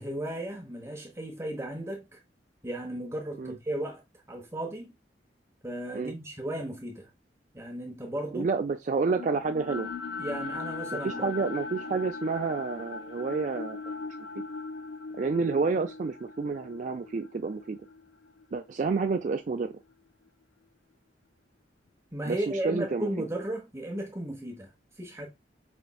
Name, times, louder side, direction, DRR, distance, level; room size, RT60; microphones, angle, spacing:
voice 1, 0.0-2.2 2.6-4.0 4.3-4.9 5.6-7.1 7.5-8.5 10.2-11.3 15.8-15.9 22.1-25.3, right 1 dB, 15° right, 0.9 m, -35 dB
voice 2, 8.3-9.9 11.0-13.9 15.2-17.8 18.5-19.7 22.3-23.2, right 4 dB, 45° right, 0.4 m, -29 dB
sound 1, 9.1-19.3, left 4 dB, 90° left, 0.5 m, -39 dB
5.2 x 3.4 x 2.2 m
head